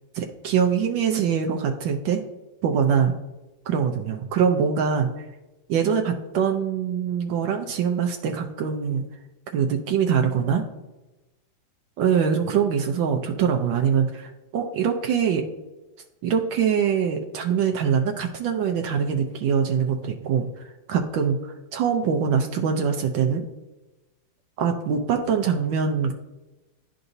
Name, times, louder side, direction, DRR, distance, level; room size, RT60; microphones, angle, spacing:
voice 1, 0.1-2.2 2.6-3.1 3.7-5.3 5.7-9.0 9.5-10.6 12.0-15.4 16.2-23.5 24.6-26.1, right 7 dB, 80° right, 3 dB, 1.3 m, -23 dB
11.0 x 3.9 x 2.6 m, 1.1 s
omnidirectional pair, 2.0 m